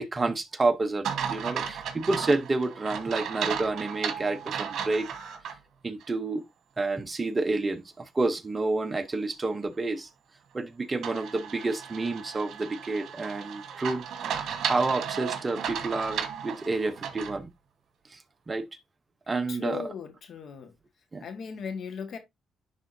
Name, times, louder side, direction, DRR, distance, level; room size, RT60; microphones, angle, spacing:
voice 1, 0.0-5.1 5.8-6.4 6.8-10.1 10.5-14.0 14.4-17.5 18.1-18.2 18.5-18.7 19.3-19.9 21.1-21.2, right 3 dB, 25° right, 0.8 m, -29 dB
sound 1, 1.0-5.6 6.0-6.1 11.0-17.4, right 8 dB, 65° right, 1.4 m, -34 dB
voice 2, 19.5-20.7 21.2-22.2, left 6 dB, 60° left, 1.5 m, -37 dB
11.0 x 3.8 x 2.7 m
cardioid pair, 90°, 0 cm